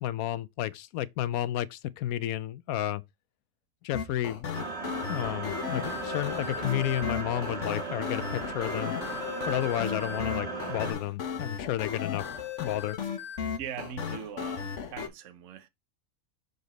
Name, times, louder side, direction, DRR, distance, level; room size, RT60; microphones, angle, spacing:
voice 1, 0.0-3.0 3.8-4.6 4.8-9.0 9.5-12.2 12.6-13.0, left 12 dB, 85° left, 1.0 m, -32 dB
sound 1, 3.9-15.1, left 7 dB, 60° left, 1.2 m, -35 dB
sound 2, 4.5-10.9, right 3 dB, 45° right, 2.1 m, -36 dB
voice 2, 13.5-15.7, right 9 dB, 65° right, 1.1 m, -41 dB
6.6 x 4.1 x 3.9 m
omnidirectional pair, 1.5 m